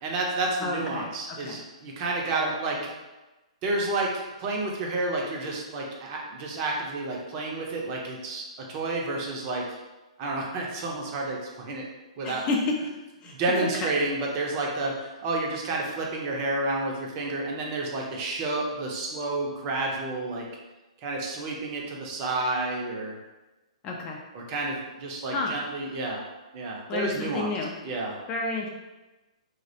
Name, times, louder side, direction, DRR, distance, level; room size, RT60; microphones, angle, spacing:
voice 1, 0.0-2.8 3.6-9.8 10.2-11.9 12.2-12.5 13.2-20.5 21.0-23.2 24.3-26.2 26.5-27.5 27.8-28.1, right 2 dB, 35° right, -1 dB, 0.5 m, -30 dB
voice 2, 0.6-1.6 2.3-2.9 12.2-13.9 23.8-24.2 25.3-25.6 26.9-27.7 28.3-28.7, left 3 dB, 25° left, -1 dB, 0.3 m, -31 dB
2.3 x 2.1 x 2.7 m, 1.1 s
hypercardioid pair, 140°, 4 cm